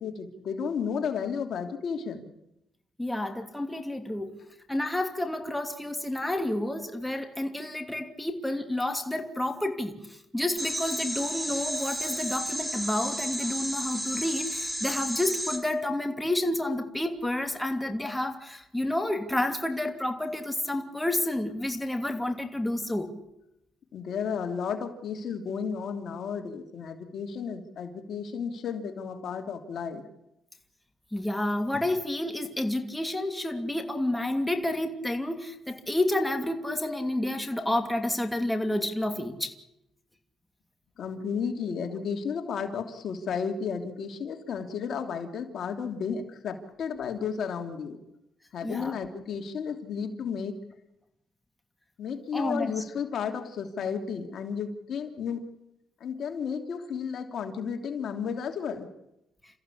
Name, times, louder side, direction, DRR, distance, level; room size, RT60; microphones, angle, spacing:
voice 1, 0.0-2.3 23.9-30.0 41.0-48.0 48.5-50.6 52.0-55.4 56.0-58.9, left 6 dB, 65° left, 4 dB, 3.0 m, -33 dB
voice 2, 3.0-4.4 4.7-23.1 31.1-39.5 48.6-49.0 52.3-52.7, left 1 dB, 5° left, 4 dB, 2.8 m, -30 dB
sound 1, 10.6-15.6, equal, 10° right, 3.8 m, -32 dB
29.0 x 15.0 x 8.5 m, 0.85 s
cardioid pair, 90°, 0 cm